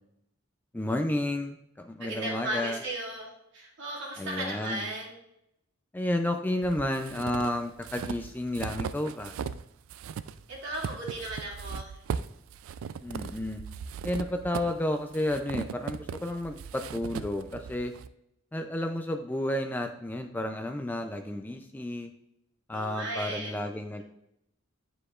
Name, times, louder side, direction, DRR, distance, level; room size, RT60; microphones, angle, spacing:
voice 1, 0.7-2.8 4.2-4.9 5.9-9.3 13.0-13.6 14.0-17.9 18.5-22.1 22.7-24.0, left 1 dB, 10° left, 5 dB, 0.4 m, -31 dB
voice 2, 2.0-3.3 3.5-5.2 10.5-12.0 22.7-23.6, right 2 dB, 60° right, -4 dB, 2.4 m, -36 dB
sound 1, 6.6-9.6 9.9-18.1, right 7 dB, 90° right, 0.3 m, -38 dB
10.0 x 4.9 x 2.4 m, 0.79 s
head